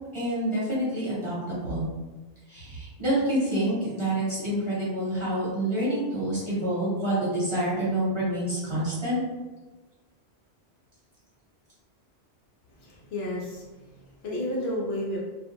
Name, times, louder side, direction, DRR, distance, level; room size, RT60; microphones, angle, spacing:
voice 1, 0.1-1.9 2.5-9.2, right 1 dB, 25° right, -10 dB, 1.0 m, -27 dB
voice 2, 12.8-15.2, left 1 dB, 70° left, -3 dB, 0.8 m, -32 dB
2.3 x 2.2 x 2.9 m, 1.2 s
omnidirectional pair, 1.2 m